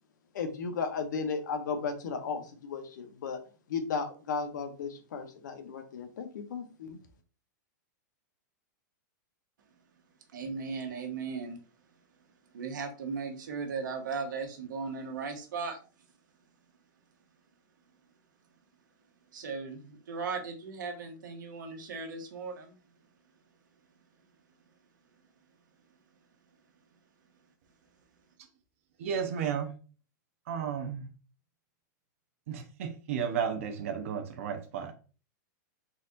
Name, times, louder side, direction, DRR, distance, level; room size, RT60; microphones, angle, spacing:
voice 1, 0.3-3.4 3.7-7.0, left 5 dB, 70° left, 1.0 m, -35 dB
voice 2, 10.3-11.6 12.5-15.8 19.3-22.8, right 5 dB, 80° right, 1.3 m, -37 dB
voice 3, 29.0-29.7 30.5-31.1 32.5-34.9, right 7 dB, 45° right, 0.8 m, -33 dB
4.2 x 4.0 x 2.6 m
supercardioid pair, 180°, 10 cm